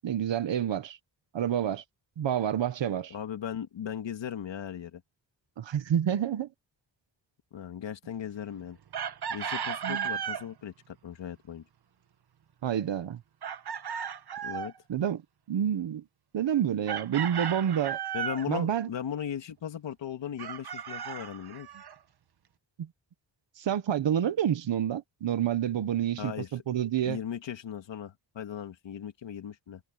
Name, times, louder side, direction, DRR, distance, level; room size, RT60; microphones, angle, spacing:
voice 1, 0.0-1.0 1.3-1.8 2.2-3.1 5.6-6.5 9.8-10.1 12.6-13.2 14.9-15.2 15.5-16.0 16.3-18.0 18.5-18.9 22.8-22.9 23.6-27.2, right 9 dB, 80° right, 1.5 m, -28 dB
voice 2, 3.1-5.0 7.5-8.8 9.3-11.6 14.4-14.7 18.1-21.7 26.2-26.5 27.0-29.8, left 9 dB, 85° left, 2.3 m, -37 dB
Chicken rooster, 8.9-10.5 13.4-14.8 16.9-18.5 20.4-21.9, right 8 dB, 60° right, 1.5 m, -35 dB
wide cardioid pair, 115°, 44 cm